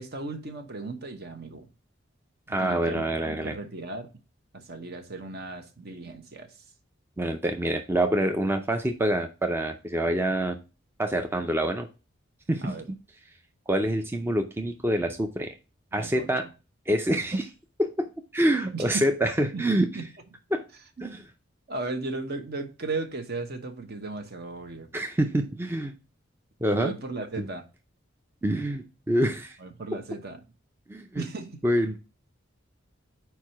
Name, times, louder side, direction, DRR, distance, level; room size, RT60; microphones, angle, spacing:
voice 1, 0.0-1.7 2.5-4.1 4.5-6.5 12.6-12.9 15.9-16.3 18.7-19.1 19.5-20.1 21.0-21.2 21.7-24.9 26.7-27.7 29.6-30.4 31.2-31.6, right 3 dB, 55° right, 1.1 m, -36 dB
voice 2, 2.5-3.6 7.2-10.6 11.0-11.9 12.5-13.0 13.7-15.5 15.9-16.5 16.9-17.5 17.8-19.9 20.5-20.6 21.0-21.2 24.9-25.9 26.6-26.9 27.4-27.5 28.4-29.6 30.9-31.2 31.6-32.0, right 1 dB, 10° right, 0.5 m, -26 dB
4.7 x 4.6 x 5.7 m
head